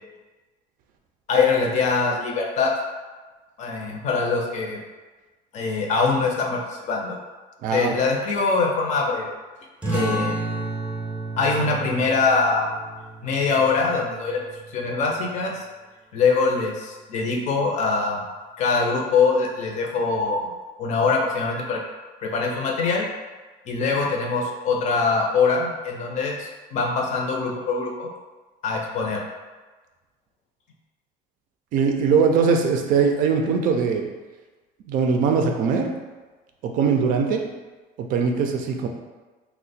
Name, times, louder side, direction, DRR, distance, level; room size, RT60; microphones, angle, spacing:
voice 1, 1.3-2.7 3.6-4.8 5.5-7.2 7.7-9.3 9.9-10.4 11.4-12.7 13.2-14.4 14.7-15.6 16.1-18.2 18.6-20.5 20.8-21.8 22.2-23.1 23.7-28.1 28.6-29.2, left 4 dB, 45° left, 0 dB, 0.6 m, -23 dB
voice 2, 7.6-7.9 31.7-34.1 34.9-35.9 36.6-37.4 38.0-38.9, right 5 dB, 55° right, 3 dB, 0.4 m, -21 dB
sound 1, 9.8-15.0, right 2 dB, 10° right, 0.6 m, -31 dB
2.8 x 2.1 x 4.1 m, 1.3 s
cardioid pair, 165°, 16 cm